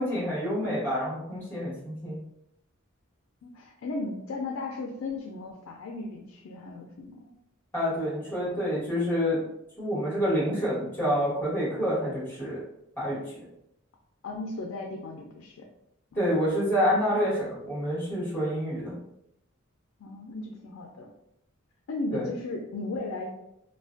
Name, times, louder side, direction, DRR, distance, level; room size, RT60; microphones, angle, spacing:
voice 1, 0.0-2.2 7.7-9.4 9.8-12.6 13.0-13.2 16.1-18.9 22.1-22.3, equal, 10° left, -7 dB, 1.2 m, -27 dB
voice 2, 3.4-7.3 8.3-8.6 14.2-15.7 20.0-21.1 21.9-23.3, left 2 dB, 75° left, 1 dB, 0.4 m, -36 dB
2.4 x 2.1 x 2.4 m, 0.80 s
head